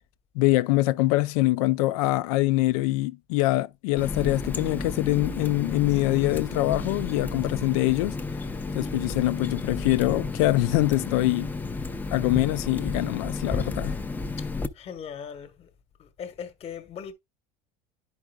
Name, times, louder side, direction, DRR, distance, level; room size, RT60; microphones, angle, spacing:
voice 1, 0.4-8.2 8.7-11.5 12.1-13.9, left 18 dB, 80° left, 0.4 m, -24 dB
Water tap faucet, 4.0-14.7, left 3 dB, 10° left, 0.5 m, -32 dB
voice 2, 14.7-15.7 16.0-17.1, left 7 dB, 35° left, 1.1 m, -39 dB
10.5 x 4.9 x 2.2 m
supercardioid pair, 125°, 18 cm